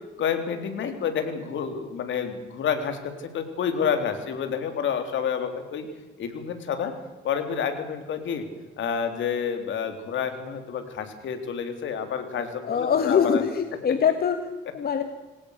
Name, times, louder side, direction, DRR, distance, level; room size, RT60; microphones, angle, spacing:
voice 1, 0.2-5.9 6.2-6.9 7.2-8.4 8.8-13.4, left 7 dB, 70° left, 7 dB, 3.8 m, -29 dB
voice 2, 12.6-14.4 14.7-15.0, left 7 dB, 50° left, 7 dB, 2.0 m, -23 dB
27.0 x 19.0 x 6.8 m, 1.2 s
cardioid pair, 90°, 20 cm